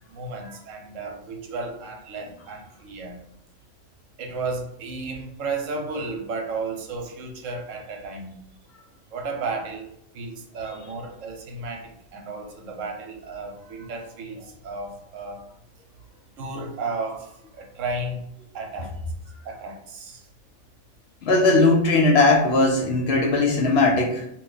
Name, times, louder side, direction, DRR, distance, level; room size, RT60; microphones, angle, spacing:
voice 1, 0.1-3.2 4.2-8.4 9.1-9.9 10.1-15.4 16.4-18.2 18.5-18.9 19.4-20.2, right 3 dB, 75° right, 2 dB, 1.0 m, -33 dB
voice 2, 21.2-24.2, left 3 dB, 65° left, 2 dB, 0.7 m, -18 dB
2.7 x 2.2 x 3.8 m, 0.73 s
omnidirectional pair, 1.3 m